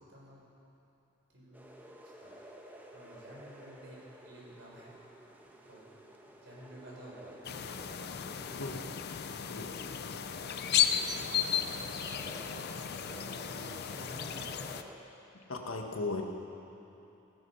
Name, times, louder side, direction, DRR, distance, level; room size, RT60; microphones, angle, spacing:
voice 1, 0.1-0.4 1.3-6.0 6.3-8.6 10.2-12.5 12.9-14.9, right 1 dB, 60° right, -4 dB, 4.3 m, -53 dB
sound 1, 1.5-15.0, right 1 dB, 10° right, 1.2 m, -52 dB
sound 2, 7.4-14.8, left 9 dB, 55° left, 0.6 m, -34 dB
voice 2, 8.6-9.2 9.5-9.7 15.3-16.2, left 3 dB, 70° left, 2 dB, 1.6 m, -38 dB
15.5 x 15.5 x 5.7 m, 3.0 s
head